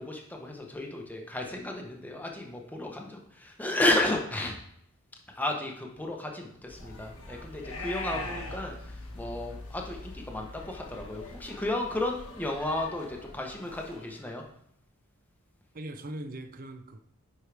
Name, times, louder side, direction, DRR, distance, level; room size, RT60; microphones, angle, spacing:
voice 1, 0.0-4.6 5.3-14.4, left 1 dB, 10° left, 0.9 m, -33 dB
sound 1, 6.7-14.3, left 2 dB, 85° left, 1.3 m, -42 dB
voice 2, 8.1-8.5 15.7-17.0, right 1 dB, 40° right, 0.6 m, -41 dB
9.7 x 4.6 x 3.4 m
head